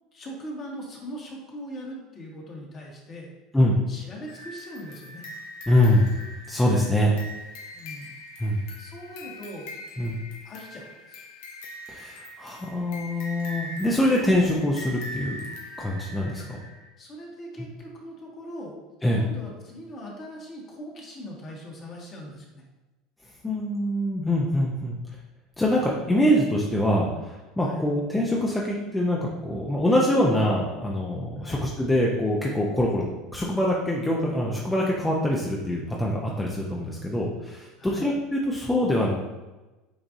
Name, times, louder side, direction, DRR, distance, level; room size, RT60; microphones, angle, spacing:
voice 1, 0.1-3.3 3.9-5.2 7.7-8.1 8.5-9.7 10.4-11.2 16.3-16.5 17.0-18.8 19.1-22.6 27.6-27.9 31.4-31.6 37.8-38.1, equal, 40° left, -2 dB, 1.5 m, -40 dB
sound 1, 4.3-16.9, left 1 dB, 75° left, 0.8 m, -42 dB
voice 2, 5.7-6.1 6.5-7.1 8.4-8.6 10.0-10.2 11.9-15.4 15.8-16.6 19.0-19.2 23.4-25.0 25.6-33.0 33.3-39.1, left 1 dB, 10° left, -3 dB, 0.7 m, -24 dB
7.7 x 2.6 x 2.6 m, 1.1 s
hypercardioid pair, 85°, 0 cm